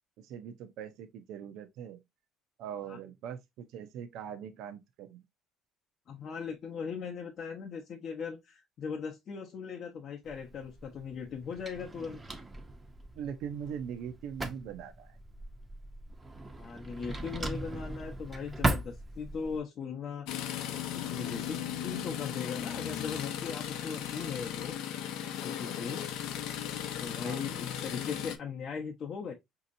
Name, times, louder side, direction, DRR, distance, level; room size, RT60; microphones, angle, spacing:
voice 1, 0.2-2.0 2.6-5.2 13.2-15.2 27.2-27.6, right 8 dB, 75° right, 0.5 m, -41 dB
voice 2, 6.1-12.2 16.6-20.3 20.9-24.7 25.4-26.0 27.0-29.3, left 6 dB, 45° left, 0.6 m, -39 dB
Drawer open or close, 10.2-19.6, right 2 dB, 15° right, 0.5 m, -38 dB
sound 1, 20.3-28.4, left 10 dB, 80° left, 0.6 m, -36 dB
5.1 x 2.8 x 2.5 m
cardioid pair, 150°, 0 cm